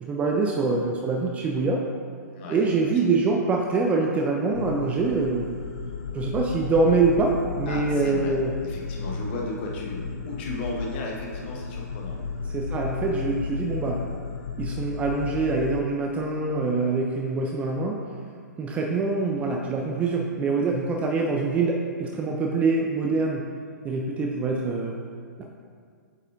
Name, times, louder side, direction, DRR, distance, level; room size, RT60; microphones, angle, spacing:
voice 1, 0.0-1.8 2.5-5.5 6.1-8.5 12.5-14.0 14.6-18.0 18.6-23.4 23.8-24.9 25.4-25.5, right 3 dB, 15° right, 0 dB, 0.4 m, -24 dB
voice 2, 2.3-3.1 7.7-12.2, left 2 dB, 35° left, -1 dB, 1.0 m, -35 dB
sound 1, 4.5-15.8, left 4 dB, 60° left, 0.5 m, -33 dB
8.1 x 4.8 x 2.5 m, 2.1 s
figure-of-eight pair, 115°, 10 cm